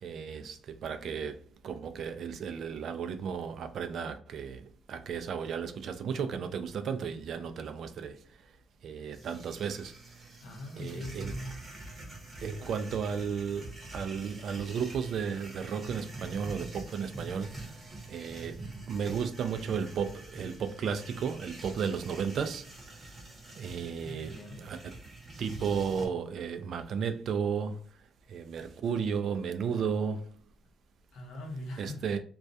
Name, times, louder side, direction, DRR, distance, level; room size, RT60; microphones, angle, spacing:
voice 1, 0.0-8.2 8.8-9.9 10.8-11.3 12.4-17.7 18.1-22.7 23.6-24.3 24.6-24.8 25.4-27.8 28.3-30.3 31.8-32.2, right 6 dB, 60° right, 0.3 m, -34 dB
sound 1, 9.1-26.1, right 2 dB, 25° right, 0.8 m, -46 dB
voice 2, 10.4-11.6 24.0-24.7 31.1-32.2, left 1 dB, 65° left, 0.9 m, -42 dB
2.3 x 2.2 x 2.6 m
cardioid pair, 125°, 0 cm